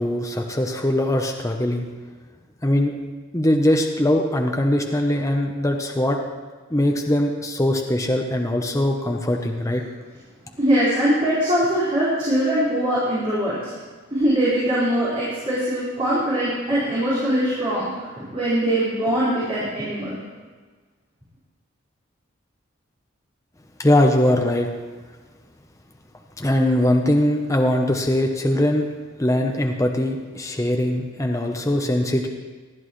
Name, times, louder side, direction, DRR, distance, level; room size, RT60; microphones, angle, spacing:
voice 1, 0.0-1.9 2.6-2.9 3.3-6.2 6.7-9.8 23.8-24.7 26.4-28.8 29.2-32.3, left 1 dB, 15° left, 2 dB, 0.8 m, -21 dB
voice 2, 10.5-13.7 14.1-17.9 18.2-20.2, right 1 dB, 30° right, -12 dB, 4.7 m, -22 dB
20.0 x 13.0 x 3.2 m, 1.4 s
head